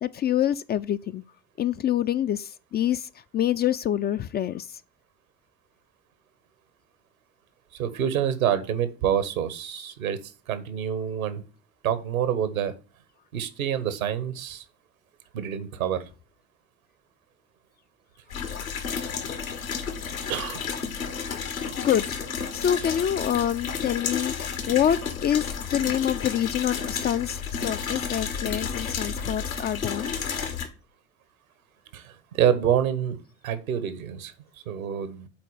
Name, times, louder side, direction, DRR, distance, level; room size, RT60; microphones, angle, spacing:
voice 1, 0.0-1.2 1.6-3.1 3.3-4.7 21.3-21.5 21.8-22.1 22.5-30.1, left 10 dB, 25° left, 0.4 m, -26 dB
voice 2, 7.7-11.4 11.8-12.7 13.3-14.6 15.3-16.1 18.7-18.8 20.3-20.6 31.9-33.2 33.4-34.3 34.7-35.3, right 9 dB, 75° right, 1.3 m, -27 dB
sound 1, 18.3-30.7, left 6 dB, 80° left, 1.6 m, -32 dB
7.7 x 4.5 x 7.0 m
figure-of-eight pair, 60°, 41 cm